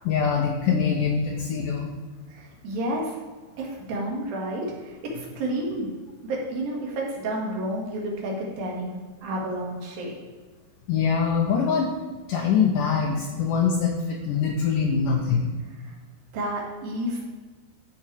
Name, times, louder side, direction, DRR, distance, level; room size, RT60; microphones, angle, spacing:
voice 1, 0.0-1.9 10.9-11.9 12.3-15.5, left 6 dB, 75° left, 0 dB, 2.1 m, -23 dB
voice 2, 2.3-3.2 3.6-6.0 6.2-10.2 16.3-17.3, right 1 dB, 65° right, -2 dB, 3.5 m, -30 dB
13.5 x 4.7 x 4.7 m, 1.4 s
omnidirectional pair, 4.7 m